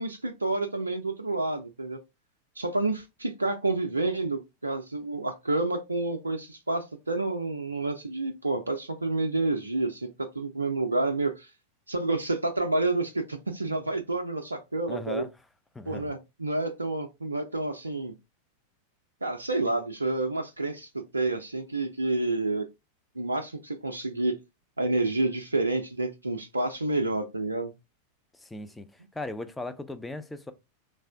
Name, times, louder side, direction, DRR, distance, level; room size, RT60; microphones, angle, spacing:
voice 1, 0.0-2.0 2.6-11.5 11.9-15.3 15.9-18.1 19.2-22.7 23.2-24.4 24.8-27.7, right 2 dB, 80° right, 0.4 m, -29 dB
voice 2, 14.9-15.3 15.7-16.1 28.3-30.5, left 2 dB, 5° left, 0.4 m, -38 dB
3.3 x 2.4 x 3.4 m
figure-of-eight pair, 90°, 0 cm